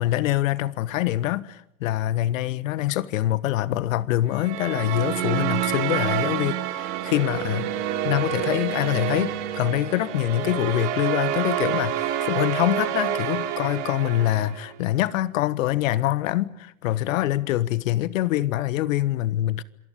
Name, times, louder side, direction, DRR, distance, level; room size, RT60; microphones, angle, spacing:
voice 1, 0.0-7.7 8.0-19.6, left 14 dB, 70° left, 1.4 m, -25 dB
sound 1, 4.3-14.7, right 10 dB, 60° right, 3.4 m, -28 dB
26.5 x 20.0 x 8.4 m
hypercardioid pair, 100°, 40 cm